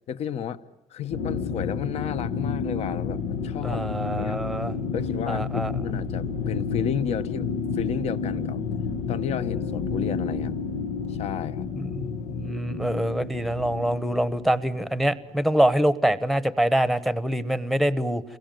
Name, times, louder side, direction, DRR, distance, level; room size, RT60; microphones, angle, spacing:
voice 1, 0.1-0.6 0.9-3.8 4.2-4.4 4.8-8.6 9.1-10.5 11.1-11.7, left 9 dB, 50° left, 14 dB, 1.1 m, -32 dB
sound 1, 1.1-15.3, left 5 dB, 90° left, 1.5 m, -30 dB
voice 2, 3.6-4.7 5.3-5.7 11.8-18.2, right 1 dB, ahead, 15 dB, 1.0 m, -25 dB
29.5 x 22.0 x 9.1 m, 0.92 s
cardioid pair, 165°, 14 cm